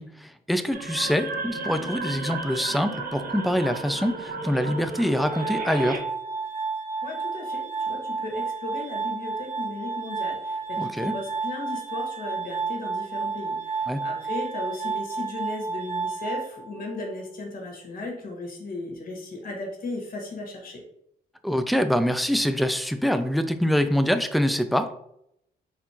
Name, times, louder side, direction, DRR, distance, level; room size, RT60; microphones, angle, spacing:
voice 1, 0.0-6.0 10.8-11.2 13.9-14.0 21.4-24.9, equal, ahead, 9 dB, 0.4 m, -25 dB
sound 1, 0.7-6.0, right 3 dB, 60° right, 0.9 m, -34 dB
Glass, 5.1-17.1, right 4 dB, 35° right, 1.5 m, -31 dB
voice 2, 7.0-20.8, left 2 dB, 60° left, 0 dB, 1.6 m, -36 dB
4.1 x 4.0 x 2.9 m, 0.77 s
cardioid pair, 80°, 17 cm